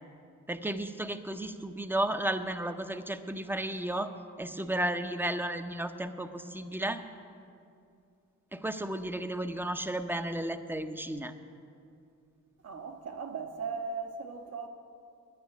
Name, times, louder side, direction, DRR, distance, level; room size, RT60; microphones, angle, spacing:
voice 1, 0.5-4.1 4.4-7.0 8.5-11.3, right 1 dB, 5° right, 9 dB, 0.6 m, -33 dB
voice 2, 12.6-14.7, right 5 dB, 55° right, 5 dB, 1.2 m, -38 dB
9.6 x 9.3 x 9.1 m, 2.5 s
cardioid pair, 90°, 30 cm